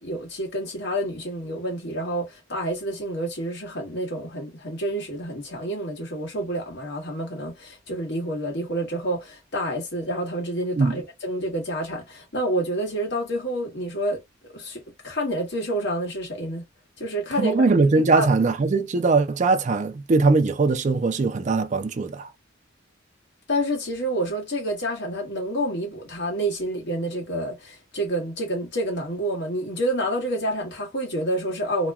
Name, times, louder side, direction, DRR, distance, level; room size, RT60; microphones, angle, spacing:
voice 1, 0.0-14.2 14.5-16.6 17.0-17.7 18.1-18.3 23.5-31.9, right 1 dB, 60° left, 1.5 m, -28 dB
voice 2, 17.4-22.3, right 3 dB, 40° right, 0.4 m, -21 dB
3.0 x 2.2 x 2.3 m
head